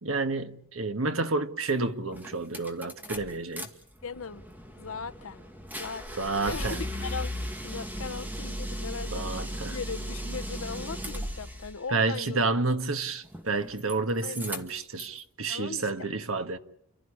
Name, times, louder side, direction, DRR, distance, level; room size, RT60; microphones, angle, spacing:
voice 1, 0.0-3.7 6.2-6.8 9.1-9.8 11.9-16.6, right 3 dB, 75° right, 1.6 m, -30 dB
sound 1, 1.7-1.8 2.1-3.7 4.0-11.8 13.2-13.9 14.2-15.2, equal, 10° right, 2.4 m, -36 dB
voice 2, 4.0-4.4 4.8-5.5 5.8-6.8 7.0-7.3 7.6-12.5 14.2-14.4 15.5-16.1, left 5 dB, 75° left, 0.9 m, -39 dB
29.5 x 14.0 x 10.0 m
head